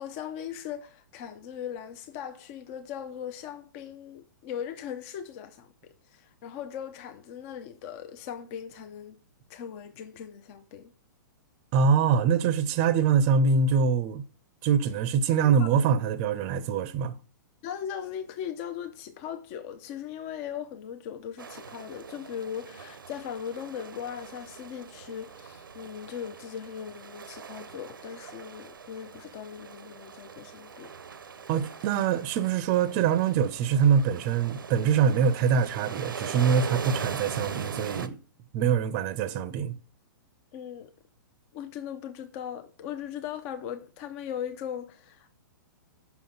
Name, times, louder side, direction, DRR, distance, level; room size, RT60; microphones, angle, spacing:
voice 1, 0.0-9.2 9.5-10.9 15.4-15.7 17.6-30.9 40.5-40.9 41.5-45.3, left 9 dB, 40° left, 0.6 m, -39 dB
voice 2, 11.7-14.2 14.6-17.1 31.5-38.2 38.5-39.8, right 6 dB, 35° right, 0.5 m, -24 dB
sound 1, 21.4-38.1, right 6 dB, 85° right, 0.6 m, -40 dB
5.8 x 3.9 x 5.8 m
hypercardioid pair, 120°, 11 cm